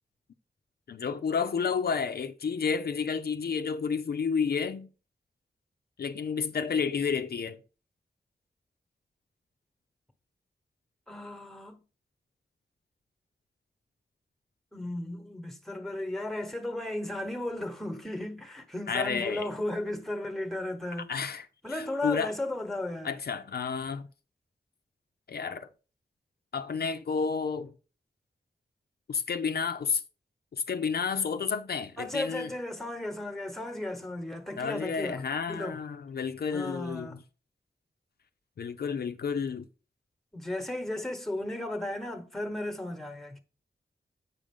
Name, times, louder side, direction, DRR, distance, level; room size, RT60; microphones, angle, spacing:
voice 1, 0.9-4.9 6.0-7.6 18.9-19.5 21.1-22.3 23.0-24.1 25.3-25.7 26.5-27.7 29.1-30.0 30.5-32.5 34.6-37.2 38.6-39.7, left 6 dB, 70° left, 0.5 m, -31 dB
voice 2, 11.1-11.8 14.7-21.1 21.6-23.1 32.0-35.2 35.5-35.8 36.5-37.2 40.3-43.4, left 1 dB, ahead, 1.1 m, -35 dB
7.5 x 5.1 x 3.7 m
wide cardioid pair, 85°, 17 cm